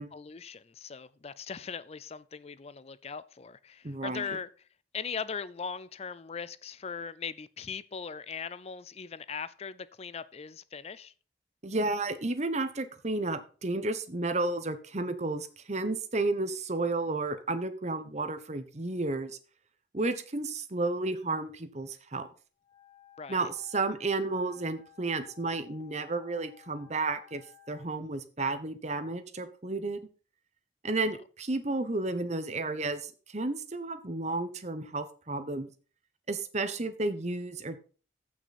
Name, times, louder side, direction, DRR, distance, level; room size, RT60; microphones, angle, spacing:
voice 1, 0.1-4.5 4.9-11.1 23.2-23.4, left 6 dB, 35° left, 0.4 m, -39 dB
voice 2, 3.8-4.3 11.6-19.4 19.9-22.3 23.3-27.4 27.7-30.1 30.8-35.7 36.3-37.8, right 2 dB, 40° right, 1.1 m, -32 dB
Wind instrument woodwind instrument, 22.6-27.9, left 11 dB, 20° left, 2.7 m, -57 dB
15.0 x 6.1 x 4.2 m
head